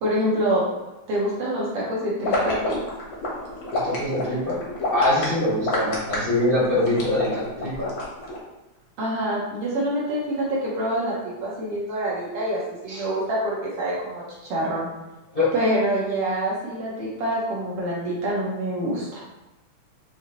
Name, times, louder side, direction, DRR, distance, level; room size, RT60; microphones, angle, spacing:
voice 1, 0.0-0.6 1.1-2.8 9.0-14.9 15.5-19.2, right 1 dB, 65° right, -6 dB, 1.7 m, -26 dB
sound 1, 2.2-8.4, left 2 dB, 60° left, 1.3 m, -28 dB
voice 2, 3.8-4.6 4.9-7.9 12.9-13.0 15.3-15.5, left 1 dB, 45° left, -10 dB, 0.7 m, -23 dB
5.8 x 2.8 x 2.9 m, 1.0 s
omnidirectional pair, 3.4 m